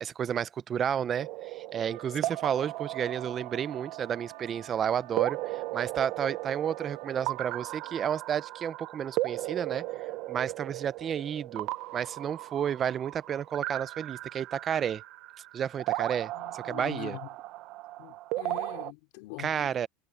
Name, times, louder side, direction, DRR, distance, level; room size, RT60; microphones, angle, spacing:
voice 1, 0.0-15.0 15.5-17.2 19.4-19.9, right 8 dB, 30° right, 0.8 m, -32 dB
sound 1, 1.2-18.9, right 18 dB, 55° right, 1.2 m, -36 dB
sound 2, 1.7-8.0, right 17 dB, 80° right, 3.8 m, -51 dB
voice 2, 16.3-17.3 18.0-19.7, left 24 dB, 70° left, 4.0 m, -43 dB
supercardioid pair, 125°, 0 cm